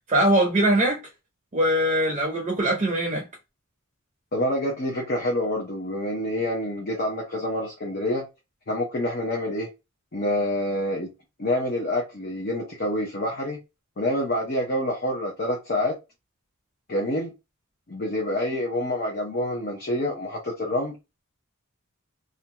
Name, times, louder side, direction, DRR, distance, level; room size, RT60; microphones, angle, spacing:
voice 1, 0.1-1.0 1.5-3.3, right 1 dB, 35° right, 0.6 m, -21 dB
voice 2, 4.3-8.2 8.7-9.7 10.1-11.1 11.4-13.6 14.0-16.0 16.9-17.3 17.9-21.0, left 1 dB, 45° left, 0.7 m, -27 dB
2.6 x 2.2 x 2.7 m
head